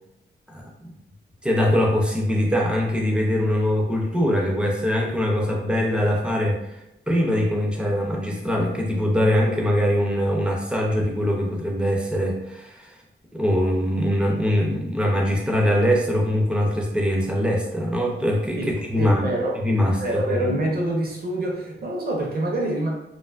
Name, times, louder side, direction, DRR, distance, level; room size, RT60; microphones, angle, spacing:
voice 1, 0.5-0.9 1.4-6.8 7.1-12.9 13.3-19.2 19.6-20.5, equal, 5° right, -1 dB, 0.4 m, -22 dB
voice 2, 19.0-19.5 19.9-22.9, right 1 dB, 50° right, -1 dB, 0.6 m, -26 dB
2.5 x 2.4 x 2.3 m, 0.87 s
wide cardioid pair, 145°, 21 cm